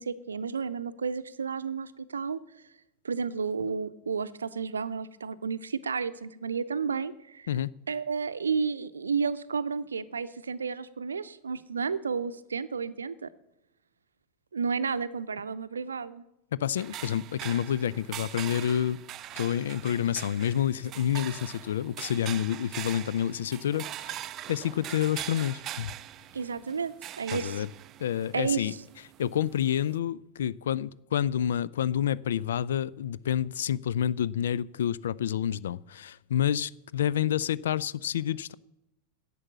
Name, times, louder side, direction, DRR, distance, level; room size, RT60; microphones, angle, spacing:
voice 1, 0.0-2.4 3.0-7.5 7.9-13.3 14.5-16.2 26.3-27.6 28.3-28.7, right 5 dB, 70° right, 0.6 m, -32 dB
voice 2, 16.5-19.0 19.3-25.9 27.3-27.7 28.0-28.7 29.2-38.5, left 10 dB, 60° left, 0.3 m, -29 dB
sound 1, 16.8-30.0, right 12 dB, 35° right, 0.4 m, -42 dB
11.0 x 8.3 x 7.4 m
figure-of-eight pair, 90°, 0 cm